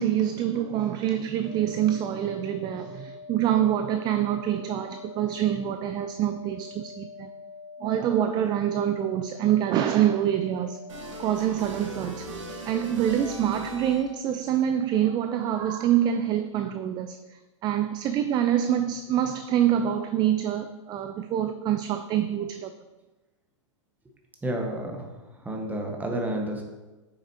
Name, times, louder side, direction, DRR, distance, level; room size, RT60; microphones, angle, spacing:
voice 1, 0.0-7.3 7.8-10.8 11.2-12.3 12.7-22.7, right 10 dB, 25° right, 0.4 m, -26 dB
sound 1, 1.4-11.4, left 4 dB, 85° left, 1.1 m, -44 dB
sound 2, 10.9-14.3, right 1 dB, 70° right, 1.5 m, -39 dB
voice 2, 24.4-25.0 25.4-26.6, right 1 dB, 10° right, 1.4 m, -30 dB
8.3 x 6.5 x 2.9 m
figure-of-eight pair, 100°, 16 cm